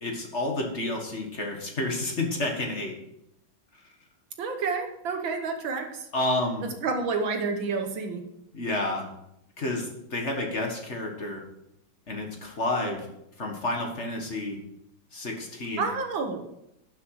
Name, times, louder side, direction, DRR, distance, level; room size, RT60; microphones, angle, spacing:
voice 1, 0.0-2.9 6.1-6.7 8.5-9.1 9.6-11.4 12.1-13.1 13.4-14.6 15.1-15.9, left 2 dB, 35° left, 2 dB, 1.7 m, -30 dB
voice 2, 4.4-6.1 6.6-8.2 15.8-16.5, right 4 dB, 65° right, 5 dB, 1.8 m, -29 dB
11.5 x 6.9 x 4.8 m, 0.80 s
omnidirectional pair, 2.4 m